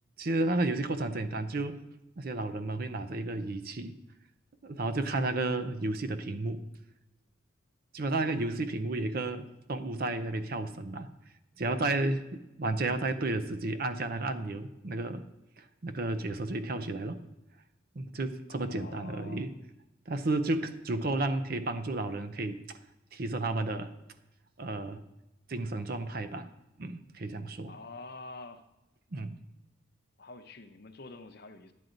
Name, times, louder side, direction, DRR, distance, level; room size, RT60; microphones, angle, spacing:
voice 1, 0.2-1.8 2.2-3.9 4.6-6.6 7.9-11.1 11.6-15.2 15.6-17.2 18.0-19.5 20.1-22.8 23.1-23.9 24.6-25.0 25.5-26.5 26.8-27.7 29.1-29.4, right 2 dB, 50° right, 10 dB, 0.6 m, -32 dB
voice 2, 18.5-19.5 27.7-28.6 30.2-31.7, left 3 dB, 50° left, 8 dB, 0.7 m, -47 dB
11.0 x 9.1 x 3.9 m, 0.97 s
head